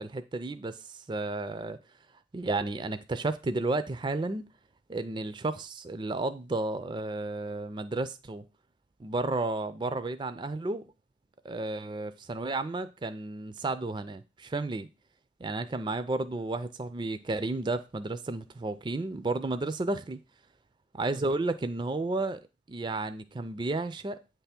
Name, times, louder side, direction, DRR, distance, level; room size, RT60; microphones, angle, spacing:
voice 1, 0.0-1.8 2.3-4.5 4.9-8.4 9.0-10.8 11.4-14.9 15.4-20.2 21.0-22.4 22.7-24.2, right 2 dB, 25° right, 0.3 m, -32 dB
8.6 x 3.4 x 5.8 m
head